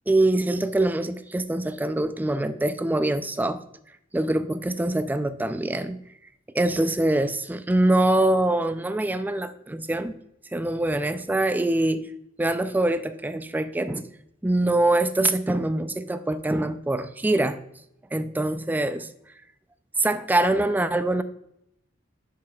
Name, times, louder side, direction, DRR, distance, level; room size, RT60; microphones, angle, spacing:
voice 1, 0.1-3.6 4.1-6.0 6.5-10.2 10.5-12.1 12.4-14.1 14.4-17.6 18.1-19.1 20.0-21.2, right 1 dB, 10° right, 0.3 m, -24 dB
7.4 x 5.9 x 2.3 m
head